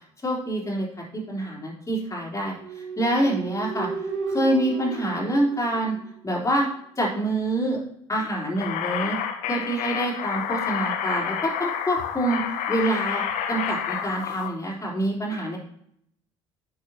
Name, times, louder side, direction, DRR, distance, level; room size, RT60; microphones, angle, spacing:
voice 1, 0.2-0.9 1.1-3.9 4.3-6.0 6.2-6.7 7.0-7.8 8.1-9.2 9.5-13.2 13.5-15.6, right 1 dB, 20° left, -3 dB, 3.7 m, -26 dB
sound 1, 2.5-6.3, right 4 dB, 60° right, 1.6 m, -34 dB
sound 2, 8.6-14.5, left 8 dB, 55° left, 0.9 m, -29 dB
10.5 x 6.4 x 2.9 m, 0.69 s
figure-of-eight pair, 55°, 15 cm